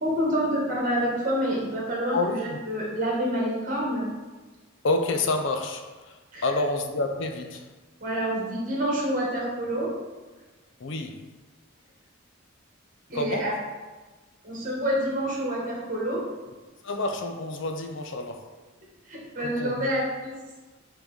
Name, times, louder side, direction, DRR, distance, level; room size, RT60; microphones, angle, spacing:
voice 1, 0.0-4.1 6.3-6.5 8.0-9.9 13.1-13.6 14.4-16.2 19.1-20.4, equal, 40° right, 1.7 m, -27 dB
voice 2, 2.1-2.6 4.8-7.7 10.8-11.2 13.1-13.6 16.8-18.5 19.4-19.9, left 2 dB, 60° left, 0.5 m, -29 dB
4.9 x 3.9 x 5.0 m
head